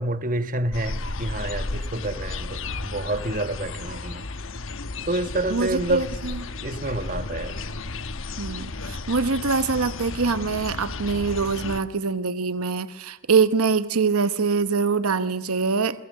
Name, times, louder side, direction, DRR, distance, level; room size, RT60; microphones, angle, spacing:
voice 1, 0.0-2.6 2.9-4.2 5.1-6.0 6.6-7.5, right 2 dB, 35° right, 1.4 m, -28 dB
sound 1, 0.7-11.8, left 3 dB, 60° left, 1.1 m, -33 dB
voice 2, 5.5-6.4 8.4-16.1, right 4 dB, 80° right, 1.0 m, -24 dB
29.5 x 22.5 x 6.5 m
head